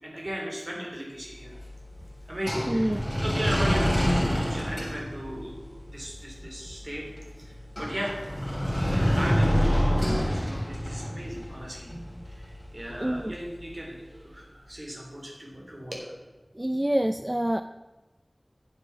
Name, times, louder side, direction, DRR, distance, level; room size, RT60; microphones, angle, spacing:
voice 1, 0.0-1.6 2.3-7.0 7.4-8.2 8.9-11.9 12.3-16.2, equal, 55° right, -2 dB, 3.4 m, -37 dB
sound 1, 1.3-14.4, equal, 5° left, 3.0 m, -29 dB
voice 2, 2.7-3.0 11.9-12.0 13.0-13.3 16.6-17.6, right 1 dB, 20° right, 10 dB, 0.4 m, -26 dB
9.1 x 7.6 x 6.0 m, 1.2 s
wide cardioid pair, 40°, 0 cm